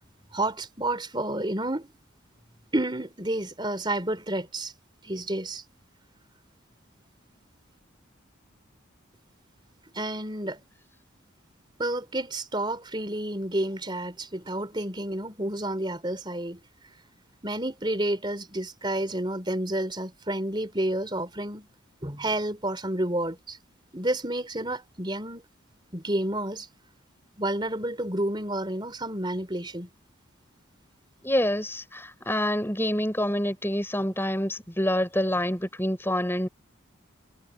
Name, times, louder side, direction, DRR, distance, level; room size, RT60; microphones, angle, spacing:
voice 1, 0.3-1.9 2.7-4.7 5.0-5.6 9.9-10.6 11.8-16.6 17.4-21.7 22.0-23.6 23.9-25.4 25.9-26.7 27.4-29.9, right 1 dB, 25° right, 4.0 m, -30 dB
voice 2, 31.2-36.5, left 1 dB, 10° left, 6.7 m, -27 dB
head